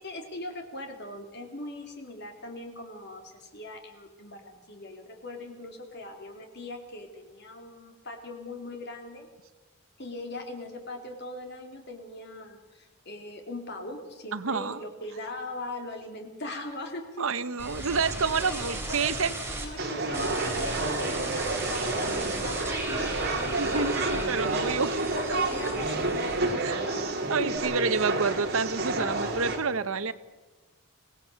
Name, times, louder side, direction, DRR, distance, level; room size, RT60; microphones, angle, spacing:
voice 1, 0.0-9.3 10.0-17.3 17.8-18.0 18.5-23.9 24.5-24.7 25.1-27.0 27.4-27.6, left 2 dB, 50° left, 4 dB, 3.2 m, -40 dB
voice 2, 14.3-14.8 17.2-19.3 23.5-24.9 25.3-25.4 26.6-26.8 27.3-30.1, right 5 dB, 75° right, 14 dB, 0.9 m, -28 dB
sound 1, 17.6-19.7 20.1-26.7 27.0-27.6, right 2 dB, 10° right, 4.0 m, -36 dB
sound 2, 19.8-29.6, right 2 dB, 50° right, 3.1 m, -30 dB
24.5 x 18.0 x 6.9 m, 1.2 s
head